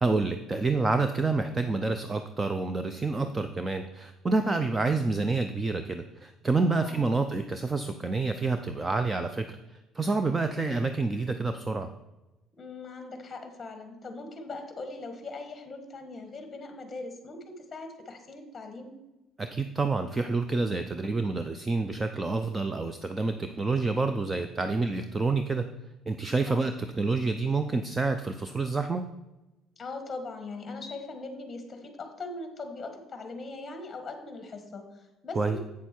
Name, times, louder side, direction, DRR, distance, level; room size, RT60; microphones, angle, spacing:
voice 1, 0.0-9.6 9.9-11.9 19.4-25.7 26.1-29.0 35.4-35.6, right 3 dB, 20° right, 8 dB, 0.5 m, -28 dB
voice 2, 6.8-7.2 12.6-18.9 26.5-26.6 29.8-35.6, left 3 dB, 20° left, 6 dB, 1.5 m, -40 dB
8.3 x 6.8 x 4.4 m, 1.0 s
cardioid pair, 120°, 0 cm